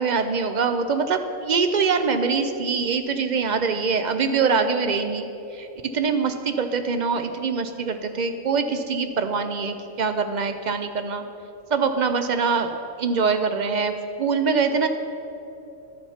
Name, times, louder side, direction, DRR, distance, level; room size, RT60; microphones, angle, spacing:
voice 1, 0.0-5.3 5.5-5.7 5.9-11.2 11.7-12.7 13.0-14.9, right 5 dB, 60° right, 8 dB, 0.4 m, -23 dB
12.0 x 7.2 x 5.7 m, 3.0 s
omnidirectional pair, 1.3 m